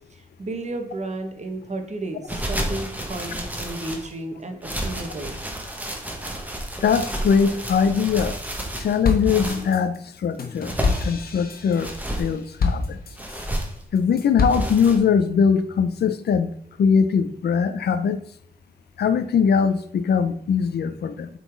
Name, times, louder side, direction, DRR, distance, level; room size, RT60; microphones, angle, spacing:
voice 1, 0.1-5.4, right 2 dB, 45° right, 5 dB, 1.3 m, -33 dB
sound 1, 2.3-4.1 4.6-9.7 10.4-11.2 11.8-12.3 13.2-13.8 14.5-15.0, right 1 dB, 10° right, 1.3 m, -31 dB
voice 2, 6.8-8.4 8.8-10.7 11.0-11.9 12.2-13.0 13.9-16.5 16.8-18.2 19.0-21.3, left 6 dB, 80° left, 11 dB, 0.6 m, -21 dB
sound 2, 8.4-8.7 9.0-13.5 14.0-14.9, left 4 dB, 65° left, 1.2 m, -27 dB
8.3 x 4.0 x 4.5 m, 0.69 s
wide cardioid pair, 105°, 17 cm